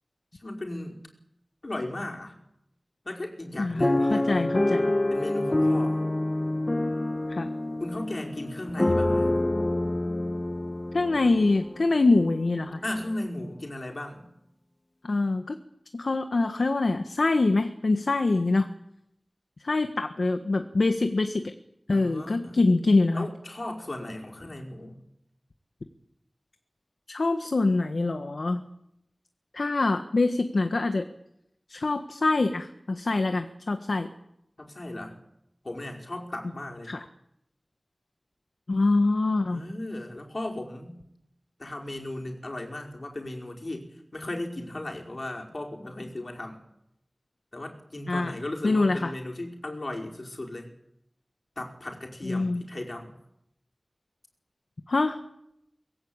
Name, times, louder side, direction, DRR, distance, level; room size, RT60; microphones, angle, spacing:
voice 1, 0.4-1.0 1.6-2.3 3.0-4.5 5.1-6.0 7.8-9.4 12.8-14.3 21.9-22.6 23.1-25.0 34.6-35.2 35.6-37.0 39.4-41.0 41.6-46.6 47.5-50.7 51.6-53.1, left 1 dB, 55° left, 1 dB, 5.1 m, -36 dB
voice 2, 3.6-4.9 7.3-7.5 10.9-12.8 15.0-15.6 15.9-18.7 19.6-21.5 21.9-23.3 27.1-28.6 29.5-31.1 31.7-34.1 36.8-37.0 38.7-39.6 48.1-48.3 48.6-49.1 52.2-52.6 54.9-55.2, left 3 dB, 90° left, 8 dB, 1.5 m, -24 dB
sound 1, 3.8-11.9 12.5-12.6 12.9-13.1, left 1 dB, 40° left, 1.3 m, -27 dB
24.0 x 21.0 x 8.8 m, 0.80 s
wide cardioid pair, 60°, 0 cm